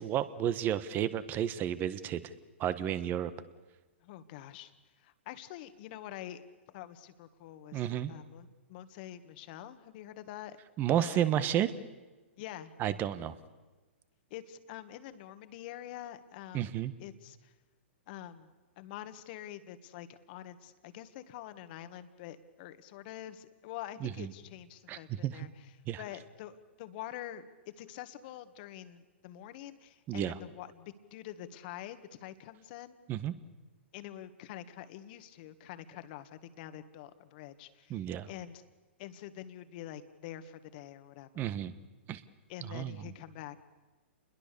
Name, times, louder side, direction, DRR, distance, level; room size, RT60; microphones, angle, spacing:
voice 1, 0.0-2.3 2.6-3.3 7.7-8.1 10.8-11.7 12.8-13.4 16.5-16.9 24.0-24.3 24.9-25.5 25.9-26.0 30.1-30.4 33.1-33.3 37.9-38.3 41.3-41.8 42.1-42.2 42.7-43.0, right 11 dB, 30° right, 14 dB, 1.4 m, -32 dB
voice 2, 4.0-4.7 5.0-6.4 6.7-10.6 11.0-11.6 12.4-12.7 14.3-16.7 17.0-17.5 18.1-18.5 18.8-25.7 26.0-33.0 33.9-38.6 39.0-41.5 42.5-43.6, left 12 dB, 45° left, 10 dB, 1.8 m, -46 dB
28.5 x 21.5 x 6.9 m, 1.2 s
hypercardioid pair, 120°, 7 cm